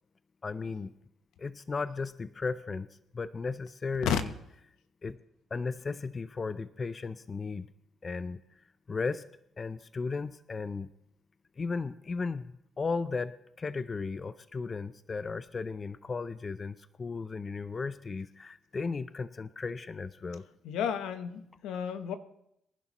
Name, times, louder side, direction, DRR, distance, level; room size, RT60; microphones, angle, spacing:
voice 1, 0.4-0.9 1.4-2.9 3.1-4.3 5.0-5.2 5.5-7.7 8.0-8.6 8.9-9.2 9.6-10.9 11.6-20.4, left 4 dB, 35° left, 14 dB, 0.5 m, -35 dB
voice 2, 20.6-22.2, left 8 dB, 85° left, 10 dB, 0.9 m, -31 dB
23.5 x 11.0 x 3.0 m, 0.78 s
cardioid pair, 90°, 0 cm